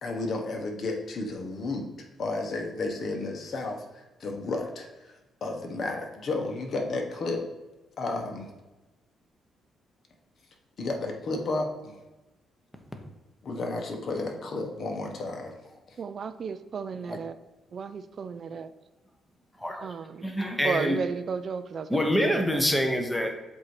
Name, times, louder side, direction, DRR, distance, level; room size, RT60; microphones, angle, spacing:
voice 1, 0.0-1.9 2.2-4.9 5.4-7.5 8.0-8.5 10.8-11.9 13.4-15.5 15.9-16.0, left 2 dB, 50° left, 2 dB, 1.1 m, -32 dB
voice 2, 16.0-17.4 17.7-18.7 19.8-20.3 20.6-22.6, right 6 dB, 50° right, 12 dB, 0.4 m, -34 dB
voice 3, 19.6-19.9 20.2-21.0 21.9-23.3, equal, 5° left, 4 dB, 0.9 m, -26 dB
7.4 x 2.8 x 4.7 m, 1.1 s
cardioid pair, 90°, 0 cm